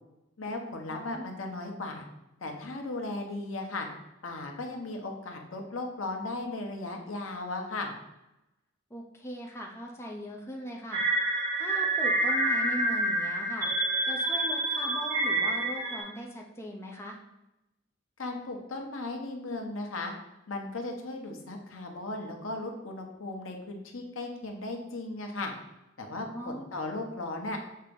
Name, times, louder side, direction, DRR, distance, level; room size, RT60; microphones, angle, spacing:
voice 1, 0.4-2.1 2.4-3.9 4.2-7.9 18.2-20.1 20.5-25.5 26.0-27.6, left 2 dB, 70° left, 2 dB, 1.1 m, -36 dB
voice 2, 0.9-1.3 8.9-11.1 11.6-13.7 14.1-17.2 26.3-26.7, equal, 15° left, 0 dB, 0.7 m, -39 dB
sound 1, 10.9-16.0, right 2 dB, 45° right, 2.0 m, -28 dB
6.6 x 2.9 x 5.2 m, 0.92 s
head